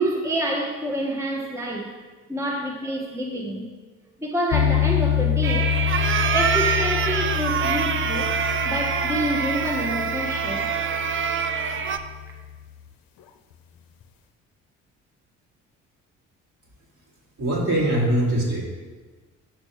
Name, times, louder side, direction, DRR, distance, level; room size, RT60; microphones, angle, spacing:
voice 1, 0.0-2.0 2.3-3.7 4.2-5.7 6.3-8.3 8.6-10.7, right 1 dB, 5° right, 0 dB, 1.0 m, -27 dB
sound 1, 4.5-12.7, left 9 dB, 60° left, 0.7 m, -27 dB
sound 2, 5.4-12.0, right 7 dB, 30° right, 0.5 m, -25 dB
voice 2, 17.4-18.6, right 1 dB, 50° right, -4 dB, 2.5 m, -22 dB
9.2 x 6.5 x 3.1 m, 1.4 s
hypercardioid pair, 50°, 39 cm